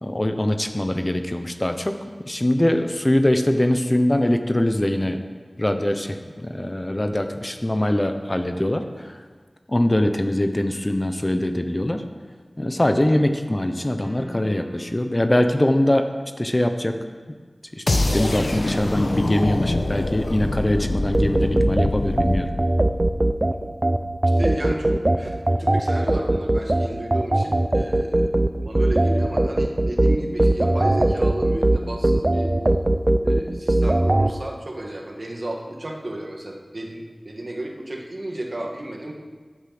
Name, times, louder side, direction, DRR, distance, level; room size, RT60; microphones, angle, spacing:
voice 1, 0.0-2.0 2.3-5.2 5.6-9.1 9.7-12.0 12.6-16.1 16.4-17.0 17.7-22.5, left 1 dB, 30° left, 6 dB, 0.9 m, -22 dB
sound 1, 14.0-15.1, left 1 dB, 85° right, 4.7 m, -40 dB
sound 2, 17.9-23.8, left 2 dB, 65° left, 1.0 m, -25 dB
sound 3, 21.1-34.3, right 1 dB, 35° right, 0.6 m, -20 dB
voice 2, 24.4-28.3 28.6-32.5 33.2-39.1, right 1 dB, 50° right, 1 dB, 1.9 m, -33 dB
14.0 x 8.5 x 6.1 m, 1.5 s
wide cardioid pair, 55°, 0 cm